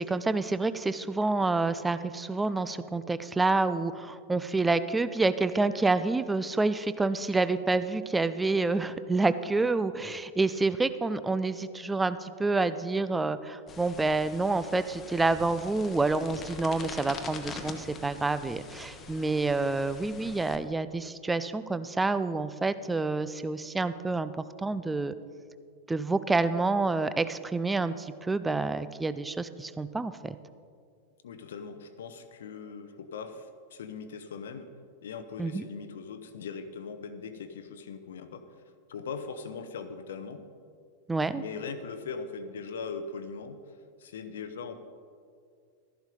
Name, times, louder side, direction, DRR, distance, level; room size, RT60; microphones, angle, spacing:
voice 1, 0.0-24.3 24.6-25.1 25.9-30.4 35.4-35.7 41.1-41.4, right 3 dB, 10° right, 13 dB, 0.4 m, -28 dB
sound 1, 13.7-20.6, left 4 dB, 25° left, 1.1 m, -44 dB
voice 2, 31.2-34.7 35.0-38.4 38.9-40.4 41.3-43.6 44.0-44.8, left 5 dB, 60° left, 10 dB, 0.8 m, -40 dB
13.0 x 11.0 x 3.9 m, 2.2 s
figure-of-eight pair, 90°, 0 cm